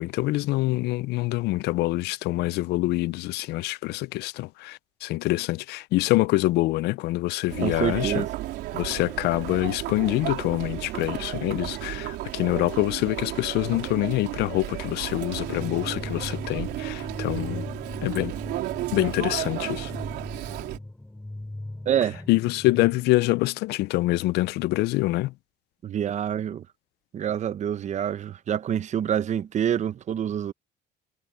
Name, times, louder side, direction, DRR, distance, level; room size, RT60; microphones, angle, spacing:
voice 1, 0.0-8.2 8.7-17.7 18.0-18.4 18.9-19.9 22.3-25.3, left 19 dB, 80° left, 0.4 m, -25 dB
Chatter, 7.5-20.8, right 16 dB, 85° right, 3.6 m, -33 dB
voice 2, 7.6-8.3 21.9-22.2 25.8-26.7 27.1-30.5, right 9 dB, 45° right, 0.7 m, -26 dB
sound 1, 15.5-23.0, left 1 dB, 10° left, 7.1 m, -39 dB
cardioid pair, 110°, 17 cm